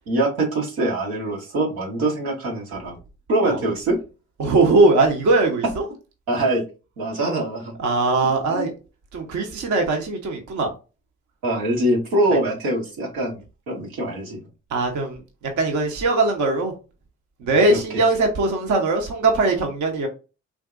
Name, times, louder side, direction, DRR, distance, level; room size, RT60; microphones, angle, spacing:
voice 1, 0.1-2.9 3.3-4.0 6.3-6.6 7.0-7.7 8.5-8.7 11.4-14.4 17.7-17.8, right 1 dB, 85° right, -3 dB, 1.0 m, -23 dB
voice 2, 4.4-5.9 7.8-8.7 9.1-10.7 14.7-15.2 15.6-16.7 17.4-20.1, right 3 dB, 60° right, 3 dB, 0.9 m, -20 dB
3.5 x 2.6 x 2.5 m, 0.32 s
hypercardioid pair, 45°, 34 cm